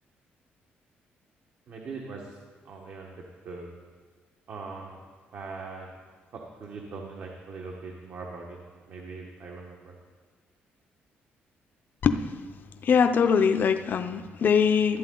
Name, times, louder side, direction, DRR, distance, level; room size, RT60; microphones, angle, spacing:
voice 1, 1.7-2.4 2.6-3.7 4.5-5.0 5.3-5.9 6.3-8.6 8.9-9.9, right 4 dB, 65° right, 0 dB, 1.2 m, -41 dB
voice 2, 12.8-15.0, left 6 dB, 55° left, 9 dB, 0.5 m, -22 dB
12.5 x 8.3 x 3.8 m, 1.6 s
cardioid pair, 95°, 4 cm